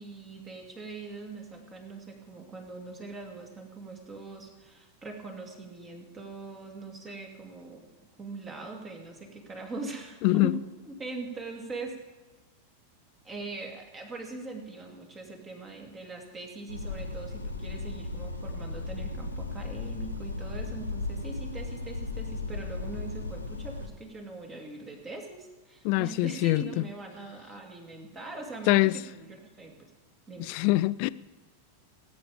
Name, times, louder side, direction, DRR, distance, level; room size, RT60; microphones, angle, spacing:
voice 1, 0.0-12.0 13.2-29.9 30.3-30.5, right 3 dB, 20° right, 2.5 m, -42 dB
voice 2, 10.2-10.6 25.8-26.8 28.7-29.0 30.4-31.1, left 19 dB, 45° left, 0.4 m, -24 dB
sound 1, 16.7-23.9, left 3 dB, 85° left, 1.2 m, -36 dB
18.5 x 8.9 x 5.1 m
figure-of-eight pair, 90°, 0 cm